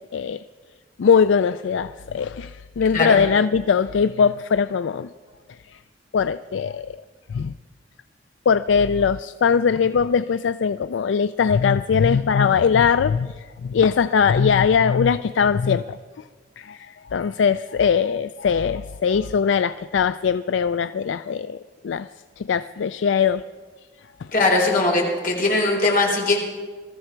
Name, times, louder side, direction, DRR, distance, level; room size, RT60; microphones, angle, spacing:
voice 1, 0.1-0.4 1.0-5.1 5.7-5.8 6.1-6.9 7.3-7.5 8.5-16.0 16.6-21.6 21.8-22.1 22.4-23.4, left 6 dB, 75° left, 0.4 m, -20 dB
voice 2, 24.3-26.4, left 2 dB, 50° left, 4.0 m, -20 dB
22.0 x 14.0 x 4.5 m
head